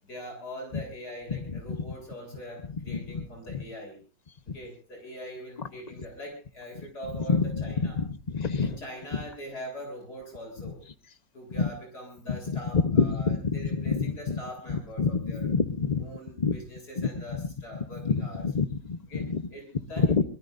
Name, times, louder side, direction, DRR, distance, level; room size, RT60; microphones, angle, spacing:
voice 1, 0.0-4.0 4.5-8.0 8.4-10.8 11.3-15.5 16.0-18.5 19.1-20.1, equal, 60° left, 1 dB, 8.5 m, -42 dB
voice 2, 8.3-8.7 12.8-14.4 15.0-16.0 16.4-16.6 18.0-19.4 20.1-20.2, left 5 dB, 30° left, 11 dB, 0.8 m, -26 dB
24.5 x 21.0 x 2.6 m, 0.34 s
omnidirectional pair, 1.9 m